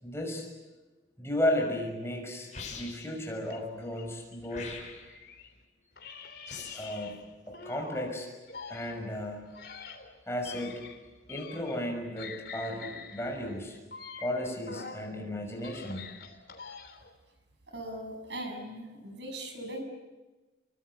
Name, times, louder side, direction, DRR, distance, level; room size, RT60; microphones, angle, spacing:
voice 1, 0.0-0.5 1.2-4.7 6.7-7.2 7.5-8.3 8.7-9.5 10.3-10.8 11.3-13.8 14.2-16.0, left 1 dB, 15° left, 2 dB, 6.2 m, -34 dB
sound 1, 2.5-3.2 4.5-5.2 6.5-6.9, left 5 dB, 40° left, 7.3 m, -42 dB
sound 2, 3.5-5.5 6.0-8.1 8.5-11.9 12.2-15.1 15.5-17.2, left 5 dB, 60° left, 3.5 m, -46 dB
voice 2, 17.7-19.8, right 1 dB, 75° right, 5 dB, 6.7 m, -39 dB
29.0 x 23.5 x 8.3 m, 1.2 s
head